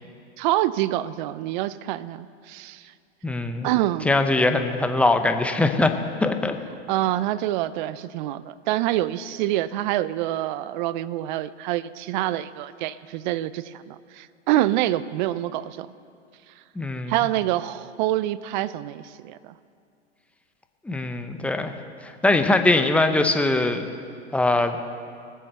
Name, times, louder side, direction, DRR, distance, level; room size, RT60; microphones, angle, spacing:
voice 1, 0.4-2.9 3.6-4.1 6.9-15.9 17.1-19.5, right 14 dB, 40° right, 17 dB, 0.5 m, -26 dB
voice 2, 3.2-3.7 4.0-5.9 6.2-6.6 16.8-17.1 20.8-21.7 22.0-23.9 24.3-24.8, left 2 dB, 5° left, 7 dB, 0.7 m, -21 dB
19.5 x 7.4 x 6.6 m, 2.3 s
hypercardioid pair, 115°, 36 cm